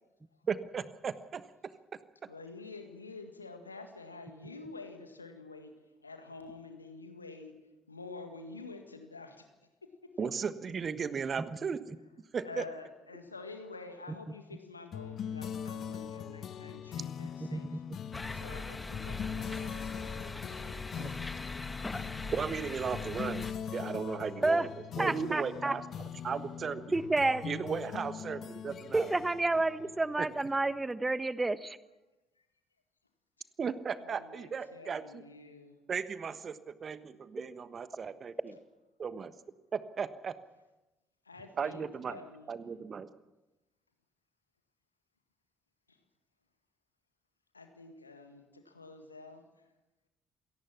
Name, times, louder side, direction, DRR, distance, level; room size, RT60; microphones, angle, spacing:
voice 1, 0.5-1.4 10.2-12.0 12.3-12.6 21.0-21.2 22.3-24.7 25.0-25.8 26.2-27.0 27.4-29.1 30.2-30.3 33.6-35.2 35.9-38.5 39.0-39.3 39.7-40.3 41.6-42.2 42.5-43.1, right 6 dB, 40° right, 13 dB, 1.3 m, -36 dB
voice 2, 2.3-5.7 6.0-7.5 7.9-9.5 9.8-9.9 10.2-10.3 12.4-17.8 18.3-20.2 26.3-26.4 27.1-27.3 27.8-27.9 28.5-28.6 34.0-36.1 37.0-37.1 41.3-42.5 45.9-46.0 47.5-49.4, left 3 dB, 90° left, 7 dB, 1.8 m, -48 dB
sound 1, 14.9-30.8, left 8 dB, 50° left, 1.0 m, -42 dB
sound 2, 18.1-23.5, left 2 dB, 20° left, 2.0 m, -41 dB
voice 3, 25.0-25.7 26.9-27.4 28.9-31.8, right 2 dB, 20° right, 15 dB, 1.2 m, -29 dB
27.0 x 18.0 x 6.0 m, 1.0 s
figure-of-eight pair, 50°, 0 cm